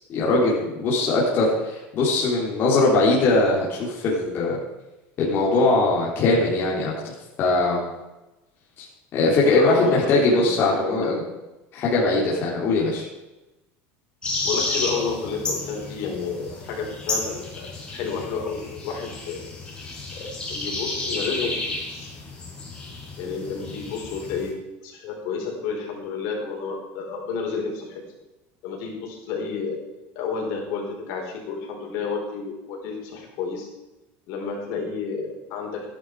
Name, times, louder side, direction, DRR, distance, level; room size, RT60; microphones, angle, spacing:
voice 1, 0.1-4.6 5.2-7.1 7.4-7.9 8.8-8.9 9.1-11.2 11.7-13.1, left 2 dB, 40° left, -5 dB, 3.7 m, -21 dB
voice 2, 9.4-11.2 14.4-17.7 17.9-19.4 20.1-22.1 23.2-24.5 24.8-27.9 28.6-29.7 30.1-33.7 34.3-35.9, left 5 dB, 60° left, 0 dB, 4.7 m, -30 dB
sound 1, 14.2-24.5, left 2 dB, 15° left, 4.9 m, -32 dB
15.0 x 11.0 x 4.9 m, 1.0 s
cardioid pair, 150°, 6 cm